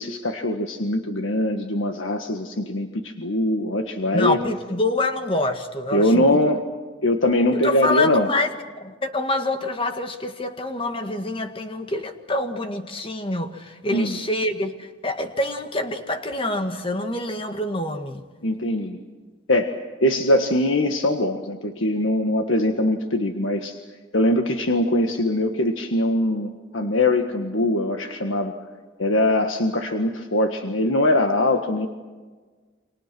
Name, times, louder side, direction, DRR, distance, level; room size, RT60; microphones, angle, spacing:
voice 1, 0.0-4.4 5.9-6.7 7.0-8.3 13.9-14.2 18.4-19.0 19.5-23.8 24.1-28.6 29.0-31.9, left 1 dB, 90° left, 5 dB, 1.7 m, -22 dB
voice 2, 4.1-6.4 7.5-8.5 8.8-18.2, left 2 dB, 25° left, 7 dB, 1.9 m, -26 dB
30.0 x 26.5 x 6.2 m, 1.4 s
head